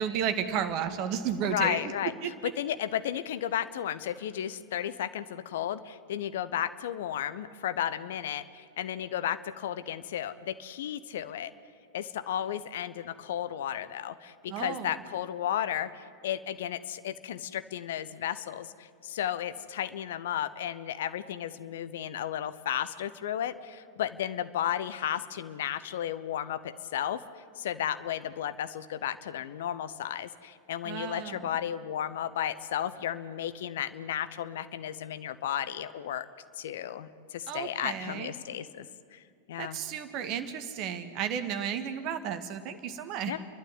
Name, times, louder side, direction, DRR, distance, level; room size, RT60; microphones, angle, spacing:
voice 1, 0.0-1.8 2.2-2.3 14.5-14.9 30.8-31.5 37.5-38.3 39.6-43.4, right 8 dB, 40° right, 9 dB, 1.8 m, -33 dB
voice 2, 1.4-2.1 2.6-11.5 11.9-27.2 27.6-36.2 36.6-38.9 39.1-39.2 39.5-39.8 43.3-43.4, left 10 dB, 55° left, 14 dB, 0.9 m, -33 dB
30.0 x 12.0 x 9.6 m, 2.3 s
figure-of-eight pair, 90°, 0 cm